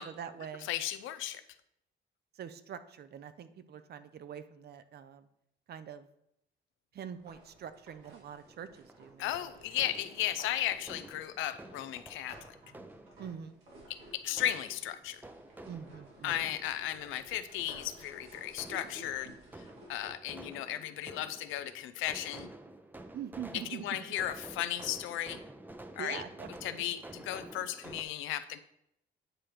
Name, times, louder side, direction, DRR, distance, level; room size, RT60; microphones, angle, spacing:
voice 1, 0.0-0.7 2.3-5.3 5.7-6.1 6.9-9.5 13.2-13.6 15.7-16.6 23.1-24.0 26.0-26.8, right 8 dB, 55° right, 12 dB, 0.6 m, -44 dB
voice 2, 0.6-1.4 9.2-12.5 13.9-15.2 16.2-22.5 23.7-25.4 26.0-26.2 26.6-28.6, left 12 dB, 90° left, 12 dB, 0.5 m, -35 dB
sound 1, 7.0-11.7 12.3-20.1, right 1 dB, 85° right, 2.3 m, -55 dB
sound 2, 8.4-28.0, right 1 dB, 10° right, 0.5 m, -51 dB
8.8 x 3.0 x 4.9 m, 0.78 s
cardioid pair, 90°, 20 cm